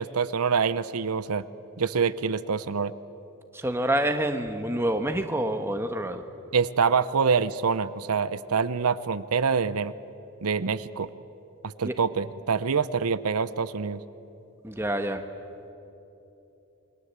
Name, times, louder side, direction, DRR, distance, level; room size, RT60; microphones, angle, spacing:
voice 1, 0.0-1.4 1.8-2.9 6.5-9.9 10.4-11.1 11.6-14.0, right 5 dB, 85° right, 15 dB, 0.7 m, -25 dB
voice 2, 3.5-6.2 11.8-11.9 14.6-15.2, right 1 dB, 10° right, 6 dB, 1.2 m, -27 dB
28.5 x 21.5 x 8.2 m, 2.9 s
head